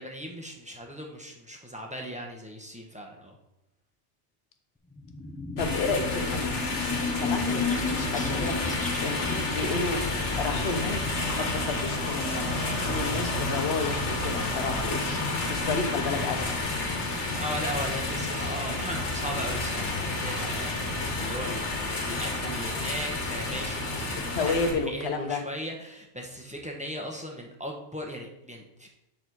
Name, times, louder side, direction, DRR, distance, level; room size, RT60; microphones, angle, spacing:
voice 1, 0.0-3.4 7.3-7.6 17.4-28.9, equal, 5° right, 0 dB, 0.8 m, -38 dB
sound 1, 5.0-10.4, left 4 dB, 15° left, 0.3 m, -33 dB
sound 2, 5.6-24.7, left 2 dB, 80° left, 1.5 m, -30 dB
voice 2, 5.6-6.5 7.1-10.0 10.4-12.6 12.9-15.2 15.5-16.6 24.3-25.4, left 3 dB, 65° left, 6 dB, 1.1 m, -31 dB
7.8 x 4.1 x 4.6 m, 0.90 s
omnidirectional pair, 1.2 m